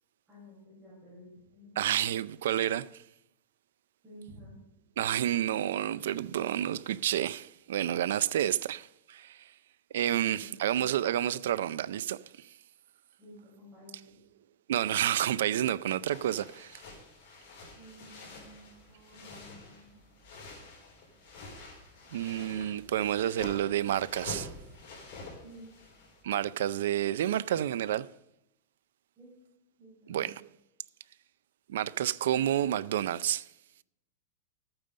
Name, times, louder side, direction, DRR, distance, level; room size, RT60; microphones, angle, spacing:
voice 1, 0.3-1.7 4.0-4.6 10.1-10.6 13.2-14.2 17.7-20.0 25.4-25.7 29.2-29.3 29.8-30.4, equal, 10° right, 5.8 m, -52 dB
voice 2, 1.8-3.0 5.0-9.5 9.9-12.5 14.7-16.8 22.1-24.5 26.2-28.1 30.1-30.5 31.7-33.4, right 11 dB, 75° right, 0.4 m, -30 dB
sound 1, 16.0-26.2, left 2 dB, 45° left, 4.4 m, -48 dB
13.0 x 8.9 x 5.3 m
supercardioid pair, 175°, 0 cm